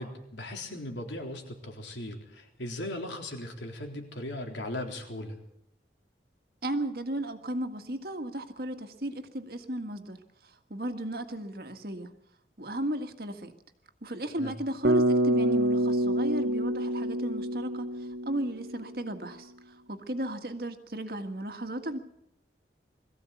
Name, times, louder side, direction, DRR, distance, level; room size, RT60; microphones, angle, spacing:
voice 1, 0.0-5.4 14.4-14.5, left 1 dB, 90° left, 3 dB, 3.8 m, -38 dB
voice 2, 6.6-12.1 12.6-13.5 14.0-22.0, right 1 dB, 55° right, 7 dB, 1.8 m, -35 dB
Bass guitar, 14.8-19.0, right 1 dB, 80° right, 1.5 m, -27 dB
22.0 x 15.0 x 8.4 m, 0.80 s
head